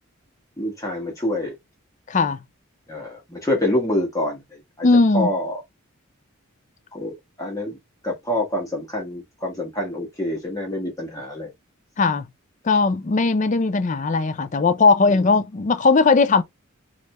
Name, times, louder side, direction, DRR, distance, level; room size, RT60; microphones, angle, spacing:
voice 1, 0.6-1.5 2.9-4.9 5.1-5.6 6.9-7.8 8.0-11.5 15.1-15.2, left 1 dB, 15° left, 1.0 m, -26 dB
voice 2, 2.1-2.4 4.8-5.3 12.0-12.3 12.6-16.4, left 4 dB, 35° left, 0.4 m, -18 dB
3.3 x 2.4 x 4.1 m
head